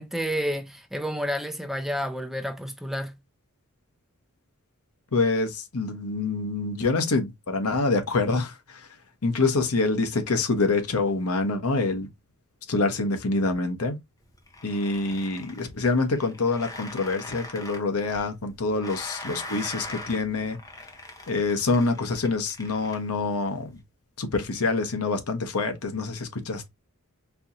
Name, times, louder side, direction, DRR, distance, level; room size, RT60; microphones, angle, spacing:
voice 1, 0.0-3.2, equal, ahead, 0.4 m, -30 dB
voice 2, 5.1-8.9 9.2-12.1 12.7-14.0 14.6-20.6 21.3-23.8 24.2-26.7, left 3 dB, 75° left, 1.0 m, -26 dB
sound 1, 14.2-23.8, left 1 dB, 15° left, 0.8 m, -42 dB
4.5 x 2.8 x 2.6 m
head